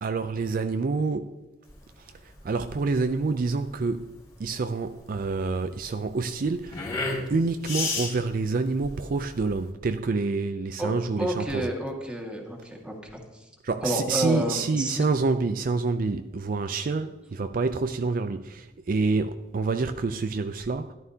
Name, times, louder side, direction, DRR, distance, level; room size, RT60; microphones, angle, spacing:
voice 1, 0.0-1.3 2.0-2.1 2.4-4.1 4.4-6.9 7.3-11.7 13.6-20.9, right 3 dB, 50° right, 0.4 m, -27 dB
sound 1, 1.7-9.7, left 3 dB, 20° left, 3.1 m, -35 dB
voice 2, 11.2-13.4 13.8-15.1, right 1 dB, 5° right, 1.8 m, -30 dB
13.0 x 11.0 x 2.8 m
head